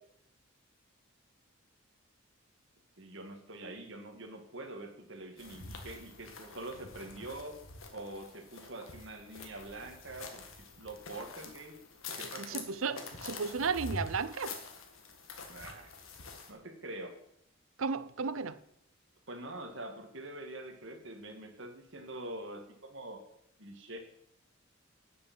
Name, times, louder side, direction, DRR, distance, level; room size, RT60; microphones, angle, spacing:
voice 1, 3.0-7.6 7.9-10.4 10.8-11.8 12.2-12.7 15.5-15.9 16.5-17.1 19.3-23.2 23.6-24.0, right 2 dB, 60° right, 1.9 m, -45 dB
sound 1, 5.4-16.5, left 3 dB, 75° left, 1.8 m, -46 dB
voice 2, 12.4-14.5 17.8-18.6, right 5 dB, 75° right, 0.6 m, -34 dB
10.0 x 6.8 x 7.3 m
head